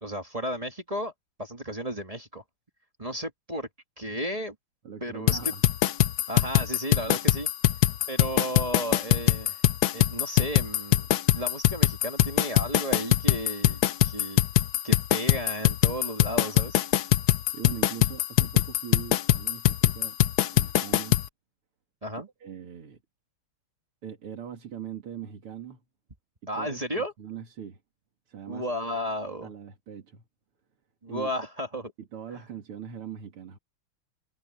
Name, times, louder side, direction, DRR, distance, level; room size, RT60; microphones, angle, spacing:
voice 1, 0.0-1.1 1.4-2.4 3.0-3.7 4.0-4.5 5.0-5.5 6.3-7.5 8.1-9.6 9.9-11.1 11.3-14.4 14.8-16.8 22.0-22.3 26.5-27.1 28.5-29.5 31.0-31.9 32.3-32.4, equal, 20° right, 1.4 m, -33 dB
voice 2, 4.8-5.6 6.9-7.1 17.5-20.2 20.5-21.2 22.4-23.0 24.0-25.8 26.5-27.8 28.3-28.7 29.4-30.2 31.1-31.3 32.0-33.6, right 8 dB, 85° right, 3.2 m, -41 dB
sound 1, 5.3-21.3, left 14 dB, 70° left, 0.9 m, -22 dB
omnidirectional pair, 2.4 m